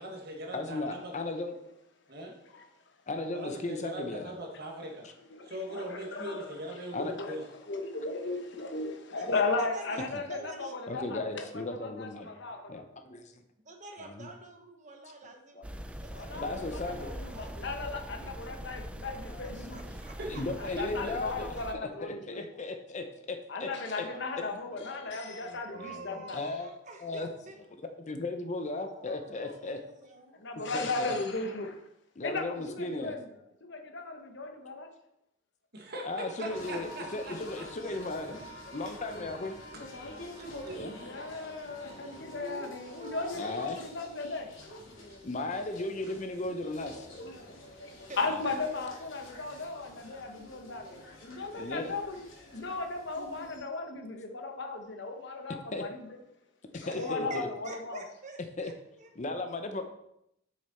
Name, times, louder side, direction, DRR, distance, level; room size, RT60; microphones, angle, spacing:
voice 1, 0.0-1.1 2.1-2.4 3.3-5.1 5.4-7.4 19.8-20.5 20.8-21.2 35.7-37.7 40.4-40.8, right 1 dB, 55° right, 0 dB, 1.8 m, -41 dB
voice 2, 0.5-1.6 3.1-4.3 6.9-7.1 10.1-10.2 10.9-12.3 12.7-13.4 14.0-14.3 15.2-15.7 16.3-17.1 18.2-18.3 19.0-19.4 20.3-21.5 21.8-23.7 24.0-24.2 24.7-25.0 25.4-26.7 27.0-27.3 28.1-29.8 30.7-31.1 32.2-33.2 36.0-38.3 38.7-39.6 40.7-40.9 43.4-43.8 45.2-47.1 48.3-48.4 51.6-51.9 55.7-55.8 56.9-57.5 58.6-58.7 59.2-59.8, left 2 dB, 40° left, 6 dB, 0.6 m, -36 dB
voice 3, 5.3-6.5 7.0-11.4 11.8-12.8 16.1-19.8 20.6-22.4 23.5-26.4 30.4-31.8 32.2-33.3 33.6-34.9 41.0-44.8 46.7-47.4 47.8-56.2 56.7-58.0, left 3 dB, 60° left, 4 dB, 1.1 m, -36 dB
voice 4, 9.1-10.8 13.6-15.6 15.9-17.5 19.7-20.7 21.5-21.6 25.7-27.6 28.8-30.4 36.4-36.8 43.0-43.6 48.1-48.8 56.9-59.1, right 2 dB, 40° right, 3 dB, 1.3 m, -48 dB
sound 1, 15.6-21.7, equal, 5° right, 0.4 m, -42 dB
sound 2, 36.5-53.6, left 1 dB, 85° left, 2.5 m, -47 dB
6.8 x 6.5 x 4.3 m, 0.79 s
head